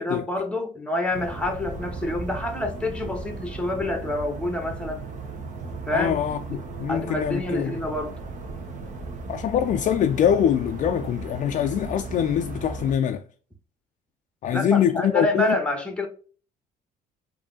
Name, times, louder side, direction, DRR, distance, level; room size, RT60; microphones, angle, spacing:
voice 1, 0.0-5.0 5.9-6.1 6.5-6.6 6.9-8.1 14.5-16.1, left 1 dB, 5° left, 1.0 m, -27 dB
sound 1, 1.1-12.9, right 3 dB, 45° right, 1.0 m, -36 dB
voice 2, 5.9-6.4 6.8-7.8 9.3-13.2 14.4-15.6, left 9 dB, 50° left, 0.4 m, -23 dB
4.8 x 2.7 x 2.7 m
cardioid pair, 110°, 17 cm